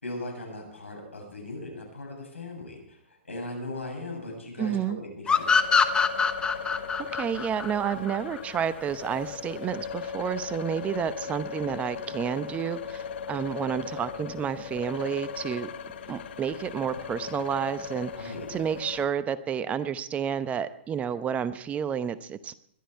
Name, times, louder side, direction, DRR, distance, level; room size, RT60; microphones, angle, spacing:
voice 1, 0.0-5.9 18.1-18.5, left 2 dB, 90° left, 1 dB, 7.3 m, -39 dB
voice 2, 4.6-5.0 7.0-15.7 16.1-22.5, right 8 dB, 20° right, 14 dB, 0.8 m, -30 dB
sound 1, 5.3-19.1, left 7 dB, 60° left, 1.3 m, -38 dB
sound 2, 5.3-8.6, left 5 dB, 15° left, 1.1 m, -24 dB
21.5 x 12.5 x 4.7 m, 0.68 s
hypercardioid pair, 120°, 7 cm